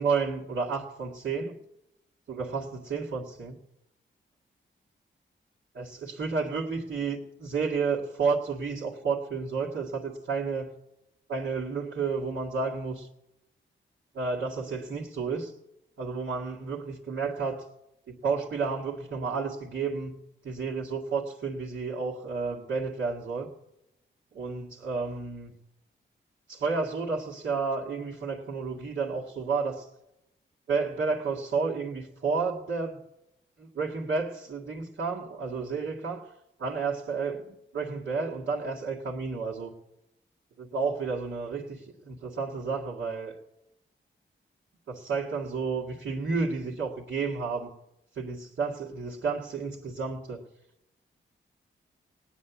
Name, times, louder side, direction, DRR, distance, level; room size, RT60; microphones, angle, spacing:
voice 1, 0.0-1.6 2.3-3.6 5.7-10.7 11.3-13.1 14.1-15.5 16.0-17.7 18.1-23.5 24.3-25.5 26.5-29.9 30.7-33.0 33.6-36.3 36.6-39.7 40.6-43.4 44.9-47.7 48.1-50.4, right 4 dB, 75° right, -6 dB, 2.1 m, -31 dB
17.5 x 9.8 x 7.1 m, 0.88 s
cardioid pair, 55°, 20 cm